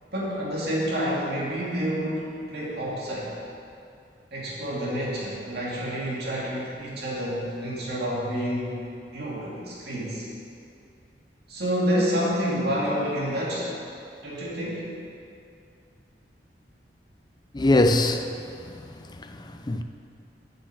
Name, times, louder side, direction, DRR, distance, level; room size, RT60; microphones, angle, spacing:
voice 1, 0.1-3.3 4.3-8.8 9.1-10.3 11.5-13.7 14.2-14.8, equal, 65° right, -6 dB, 2.4 m, -28 dB
voice 2, 17.5-18.3 18.7-18.8 19.2-19.8, left 2 dB, 25° left, 6 dB, 0.5 m, -22 dB
7.7 x 6.8 x 8.0 m, 2.5 s
head